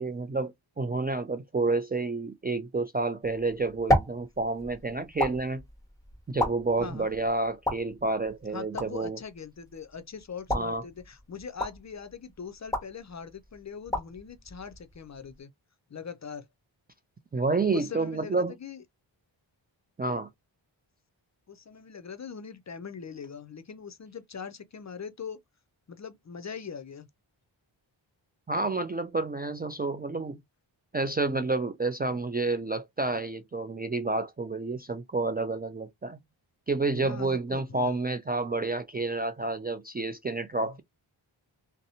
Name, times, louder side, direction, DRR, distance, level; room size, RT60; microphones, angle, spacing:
voice 1, 0.0-5.6 6.3-9.2 10.5-10.8 17.3-18.5 20.0-20.3 28.5-30.4 30.9-36.2 36.7-40.8, right 3 dB, 25° right, 0.3 m, -29 dB
sound 1, 3.2-15.4, left 1 dB, 5° left, 1.0 m, -34 dB
voice 2, 6.8-7.1 8.5-15.5 15.9-16.5 17.7-18.8 21.5-25.4 25.9-27.1 37.0-38.0 40.6-40.7, left 6 dB, 35° left, 0.5 m, -41 dB
2.6 x 2.0 x 2.6 m
cardioid pair, 45°, 48 cm